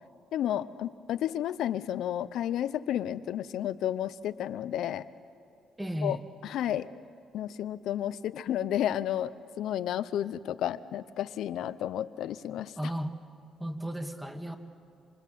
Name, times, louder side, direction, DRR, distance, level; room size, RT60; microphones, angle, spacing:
voice 1, 0.3-5.0 6.0-6.2 6.5-6.9 7.3-9.3 9.6-12.7, left 11 dB, 80° left, 14 dB, 0.7 m, -31 dB
voice 2, 5.8-6.2 12.8-13.1 13.6-14.6, equal, 10° right, 6 dB, 2.0 m, -34 dB
26.0 x 25.0 x 7.6 m, 2.6 s
cardioid pair, 90°, 0 cm